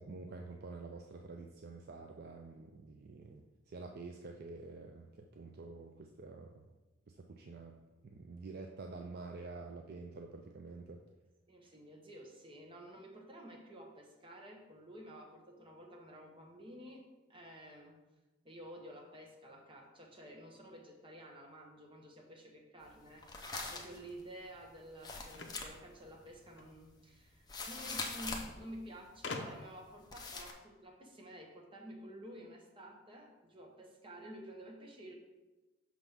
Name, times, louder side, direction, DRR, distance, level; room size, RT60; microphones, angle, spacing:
voice 1, 0.0-6.6 7.2-7.8 8.0-11.0, right 3 dB, 50° right, 3 dB, 0.4 m, -48 dB
voice 2, 11.5-17.0 17.3-18.0 18.4-23.3 23.6-35.1, equal, 25° right, 0 dB, 0.9 m, -51 dB
sound 1, 22.8-28.6 29.0-29.3 29.5-29.9 30.1-30.5, left 3 dB, 20° left, 0.6 m, -43 dB
sound 2, 25.3-26.7 27.8-27.9 28.2-28.3 29.2-29.9, left 3 dB, 60° left, 0.6 m, -44 dB
6.0 x 3.5 x 5.5 m, 1.1 s
head